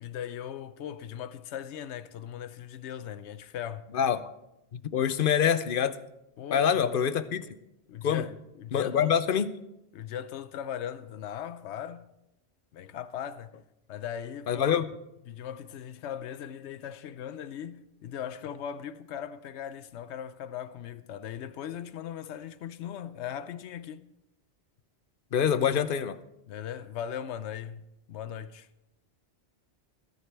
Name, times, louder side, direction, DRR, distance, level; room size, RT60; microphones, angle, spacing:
voice 1, 0.0-3.9 6.4-7.1 7.9-9.2 9.9-12.1 12.7-13.6 13.9-14.7 15.3-24.1 26.5-27.8 28.1-28.7, left 9 dB, 90° left, 0.9 m, -39 dB
voice 2, 4.7-6.0 6.5-7.4 8.0-8.2 8.7-9.5 14.5-14.9 25.3-26.2, left 8 dB, 55° left, 0.8 m, -25 dB
21.5 x 11.0 x 3.4 m
omnidirectional pair, 1.1 m